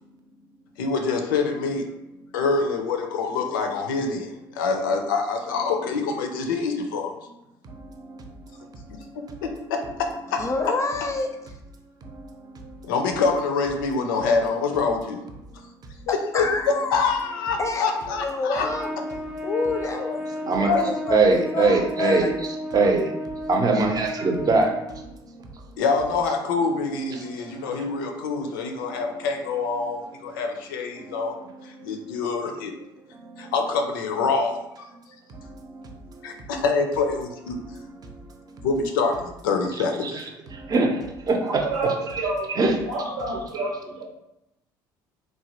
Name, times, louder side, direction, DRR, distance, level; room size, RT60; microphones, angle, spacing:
voice 1, 0.8-1.9 2.3-7.1 9.4-10.4 12.8-15.2 16.1-16.4 16.9-18.7 20.7-20.9 25.8-31.3 31.6-32.7 33.4-34.9 36.2-37.6 38.6-40.3, left 4 dB, 90° left, 4 dB, 0.4 m, -25 dB
voice 2, 10.4-11.4 16.3-17.1 17.6-18.9 19.4-22.3, left 3 dB, 25° left, 5 dB, 0.5 m, -28 dB
voice 3, 12.0-12.9 20.5-20.7 21.1-23.2 23.5-25.1 25.4-25.5 27.1-27.9 28.8-29.0 31.0-31.2 31.5-31.9 33.2-33.5 35.3-36.4 38.0-38.1 40.0-40.2 40.5-42.2 42.5-43.6, right 3 dB, 35° right, 3 dB, 0.6 m, -25 dB
Trumpet, 18.5-25.1, equal, 5° right, 0.7 m, -33 dB
voice 4, 41.4-42.5 42.9-44.0, right 2 dB, 85° right, -2 dB, 0.9 m, -28 dB
3.0 x 2.2 x 2.9 m, 0.88 s
hypercardioid pair, 75°, 11 cm